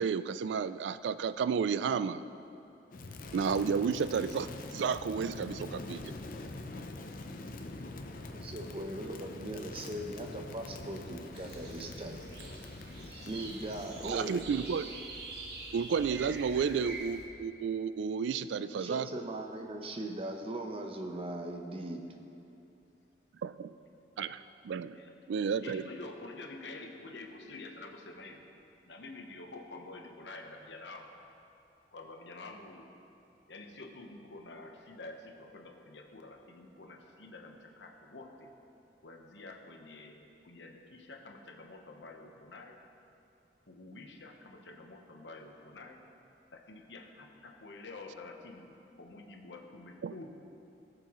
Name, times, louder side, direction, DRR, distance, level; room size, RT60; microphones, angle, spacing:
voice 1, 0.0-2.2 3.3-6.1 14.0-14.9 15.7-19.2 23.4-23.7 24.2-25.0 25.3-25.8 50.0-50.1, right 6 dB, 85° right, 13 dB, 0.3 m, -32 dB
Crackle, 2.9-14.5, left 2 dB, 50° left, 0.6 m, -44 dB
voice 2, 8.3-12.2 13.3-14.4 18.6-22.0, right 1 dB, 35° right, 3 dB, 0.8 m, -39 dB
sound 1, 11.3-17.3, right 2 dB, 65° right, 1.2 m, -45 dB
voice 3, 25.6-28.4 28.9-31.1 31.9-32.9 33.5-38.5 39.0-42.8 43.6-46.1 46.5-50.3, left 2 dB, 90° left, 3 dB, 1.0 m, -48 dB
18.0 x 6.8 x 3.1 m, 2.8 s
head